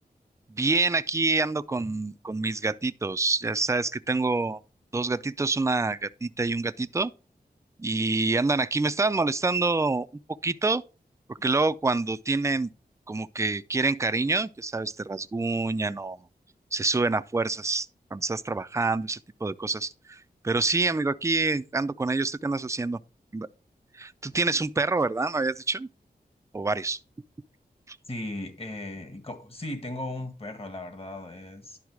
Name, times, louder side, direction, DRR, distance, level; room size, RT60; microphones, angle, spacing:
voice 1, 0.5-4.6 4.9-7.1 7.8-10.1 10.4-10.8 11.3-12.7 13.1-16.2 16.7-23.0 23.3-23.5 23.9-25.9 26.5-27.0 27.9-28.0, right 3 dB, 20° right, 0.4 m, -27 dB
voice 2, 28.0-31.8, left 1 dB, 35° left, 1.8 m, -37 dB
11.0 x 4.0 x 4.7 m
cardioid pair, 60°, 17 cm